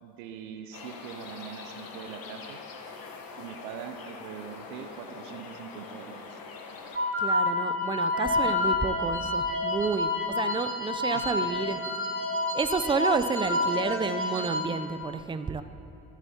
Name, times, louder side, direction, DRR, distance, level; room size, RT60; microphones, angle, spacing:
voice 1, 0.0-2.6 3.4-6.4 8.3-8.5 11.1-11.5, right 8 dB, 80° right, 7 dB, 0.6 m, -42 dB
sound 1, 0.7-7.0, left 4 dB, 55° left, 1.1 m, -43 dB
sound 2, 6.9-14.6, left 2 dB, 30° right, 1.7 m, -28 dB
voice 2, 7.2-11.8 12.5-15.6, right 5 dB, 15° right, 11 dB, 0.4 m, -30 dB
14.5 x 7.1 x 2.8 m, 2.9 s
hypercardioid pair, 55°, 42 cm